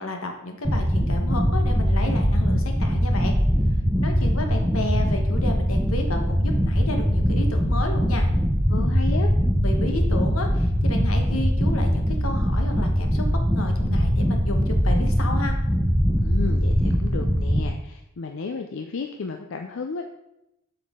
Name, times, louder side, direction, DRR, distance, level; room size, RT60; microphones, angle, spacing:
voice 1, 0.0-3.3 4.0-8.3 9.6-15.5, left 2 dB, 80° left, 4 dB, 1.2 m, -32 dB
sound 1, 0.6-17.6, equal, 5° right, 0.6 m, -22 dB
voice 2, 8.7-9.3 16.2-20.0, left 4 dB, 65° left, 5 dB, 0.5 m, -33 dB
7.9 x 5.8 x 3.6 m, 0.87 s
head